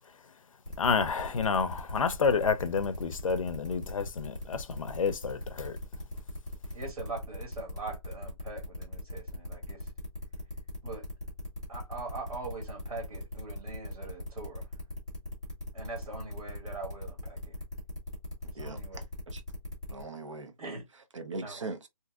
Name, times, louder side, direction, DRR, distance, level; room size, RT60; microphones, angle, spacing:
sound 1, 0.7-20.0, left 1 dB, 5° right, 0.4 m, -40 dB
voice 1, 0.8-5.8, left 5 dB, 65° left, 0.5 m, -29 dB
voice 2, 6.7-9.9 10.8-11.1 11.7-14.7 15.7-17.5 18.5-19.0 20.6-20.8 21.4-21.7, right 3 dB, 80° right, 1.8 m, -42 dB
voice 3, 18.5-19.4 19.9-20.5 21.2-21.9, right 3 dB, 55° right, 0.8 m, -40 dB
3.6 x 2.7 x 2.3 m
hypercardioid pair, 175°, 18 cm